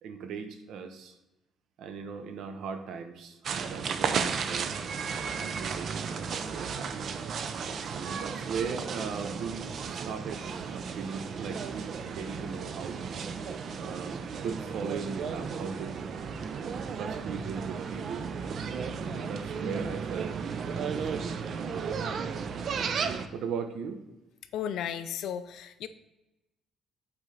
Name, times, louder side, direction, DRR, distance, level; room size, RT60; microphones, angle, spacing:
voice 1, 0.0-1.2 1.8-4.7 5.4-7.1 7.8-13.0 13.8-15.9 16.5-18.3 19.1-20.3 20.8-21.3 23.3-24.0, right 6 dB, 65° right, 7 dB, 0.8 m, -38 dB
sound 1, 3.4-23.3, right 6 dB, 40° right, 0.4 m, -34 dB
voice 2, 24.5-25.9, left 9 dB, 65° left, 11 dB, 0.5 m, -34 dB
8.0 x 4.3 x 3.8 m, 0.98 s
cardioid pair, 175°, 0 cm